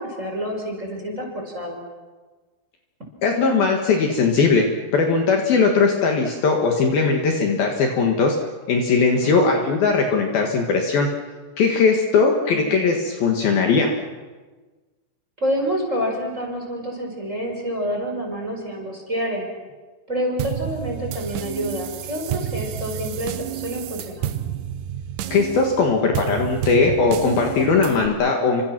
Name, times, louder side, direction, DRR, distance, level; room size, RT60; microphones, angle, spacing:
voice 1, 0.0-1.8 9.2-9.5 12.5-12.9 15.4-19.5 20.1-24.3, equal, 15° right, 1 dB, 4.9 m, -28 dB
voice 2, 3.2-4.7 4.9-8.4 8.7-11.1 11.6-13.9 25.3-28.6, left 4 dB, 60° left, 2 dB, 3.2 m, -19 dB
sound 1, 20.4-28.1, right 11 dB, 80° right, 1.9 m, -30 dB
30.0 x 25.5 x 6.1 m, 1.3 s
omnidirectional pair, 5.4 m